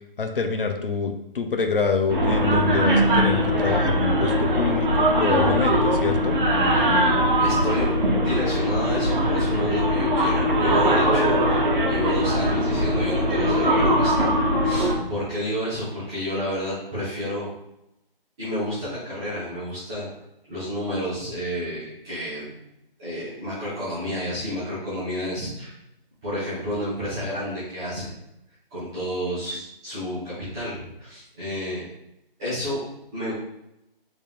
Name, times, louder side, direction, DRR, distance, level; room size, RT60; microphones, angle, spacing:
voice 1, 0.2-4.9 5.2-6.3, left 5 dB, 65° left, 6 dB, 0.7 m, -26 dB
sound 1, 2.1-15.0, equal, 55° right, 1.2 m, -21 dB
voice 2, 7.4-7.9 8.2-14.3 14.6-17.5 18.4-20.1 20.5-22.7 23.0-25.8 26.2-28.1 28.7-31.8 32.4-32.8 33.1-33.3, equal, 5° right, -14 dB, 0.6 m, -30 dB
4.2 x 3.6 x 3.4 m, 0.85 s
figure-of-eight pair, 165°, 29 cm